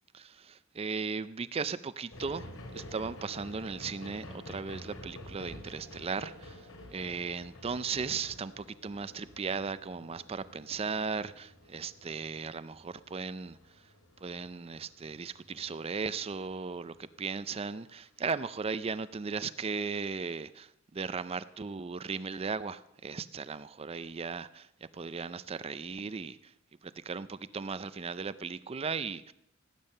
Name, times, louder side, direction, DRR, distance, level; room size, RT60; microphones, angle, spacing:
voice 1, 0.1-2.5 2.7-6.6 6.9-13.6 14.2-24.7 24.9-26.5 26.8-29.3, right 5 dB, 30° right, 15 dB, 0.4 m, -37 dB
sound 1, 2.1-17.7 18.3-18.4, left 1 dB, 80° left, 2.6 m, -50 dB
17.5 x 9.1 x 6.6 m, 0.78 s
head